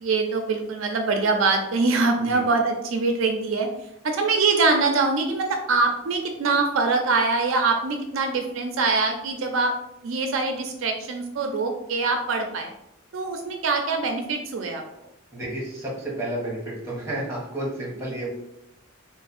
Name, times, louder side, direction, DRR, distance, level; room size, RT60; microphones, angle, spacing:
voice 1, 0.0-3.7 4.0-9.7 10.0-12.7 13.1-14.8, right 3 dB, 75° right, 4 dB, 0.4 m, -23 dB
voice 2, 15.3-18.3, right 1 dB, 15° right, -4 dB, 1.1 m, -31 dB
3.3 x 2.1 x 4.1 m, 0.85 s
head